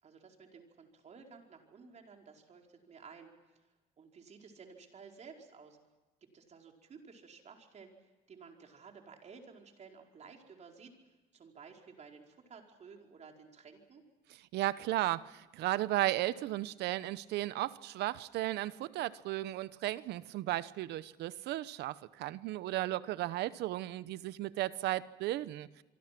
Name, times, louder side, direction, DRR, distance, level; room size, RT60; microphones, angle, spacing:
voice 1, 0.0-3.3 4.0-5.8 6.2-14.0, right 5 dB, 40° right, 2 dB, 4.7 m, -54 dB
voice 2, 14.5-25.8, right 15 dB, 80° right, 16 dB, 0.9 m, -35 dB
27.0 x 24.0 x 6.0 m, 1.2 s
cardioid pair, 110°, 17 cm